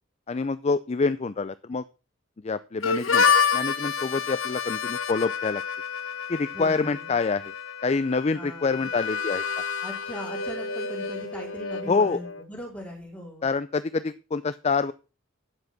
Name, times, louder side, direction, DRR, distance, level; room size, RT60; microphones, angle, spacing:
voice 1, 0.3-1.8 2.4-3.2 3.5-5.6 6.3-7.4 7.8-9.4 11.9-12.2 13.4-14.9, left 4 dB, 35° left, 13 dB, 0.4 m, -26 dB
Harmonica, 2.8-12.4, left 6 dB, 80° left, 1.2 m, -28 dB
voice 2, 6.5-7.1 8.3-8.9 9.8-13.4, equal, 10° left, -4 dB, 4.5 m, -39 dB
10.5 x 7.9 x 6.0 m, 0.33 s
head